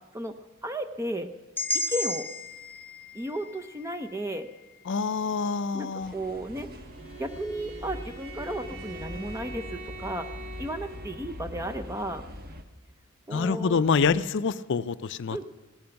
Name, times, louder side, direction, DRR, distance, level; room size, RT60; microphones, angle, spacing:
voice 1, 0.6-1.3 1.9-2.3 3.1-4.5 5.7-6.7 7.2-10.3 10.6-12.2 13.3-13.8 15.3-15.4, right 1 dB, 15° right, 8 dB, 0.6 m, -34 dB
sound 1, 1.6-5.6, left 1 dB, 10° left, 0.9 m, -35 dB
voice 2, 4.9-6.1 13.3-15.4, left 5 dB, 60° left, 15 dB, 0.5 m, -26 dB
sound 2, 6.0-12.6, left 1 dB, 45° right, 1.4 m, -42 dB
Bowed string instrument, 6.8-11.6, right 2 dB, 65° right, 5.1 m, -44 dB
17.5 x 13.0 x 5.8 m, 1.2 s
head